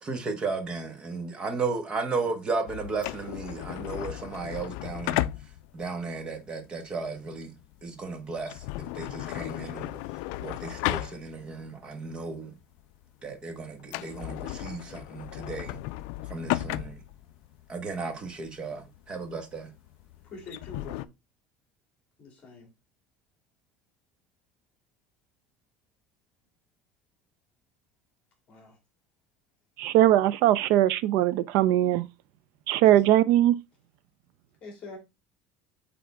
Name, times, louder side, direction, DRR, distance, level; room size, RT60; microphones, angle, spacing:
voice 1, 0.0-5.3 5.7-7.5 7.8-10.0 10.4-12.5 13.2-15.8 16.3-17.0 17.7-19.7, right 4 dB, 25° right, 1.3 m, -34 dB
sound 1, 2.7-11.7 12.1-12.2 12.8-13.0 13.3-13.4 13.8-21.1, left 17 dB, 75° left, 0.4 m, -35 dB
voice 2, 20.2-21.1 22.2-22.7 28.5-28.8 32.9-33.0 34.6-35.0, left 3 dB, 30° left, 2.9 m, -44 dB
voice 3, 29.8-32.1 32.7-33.6, right 13 dB, 70° right, 0.6 m, -21 dB
8.4 x 3.8 x 3.5 m
cardioid pair, 155°, 4 cm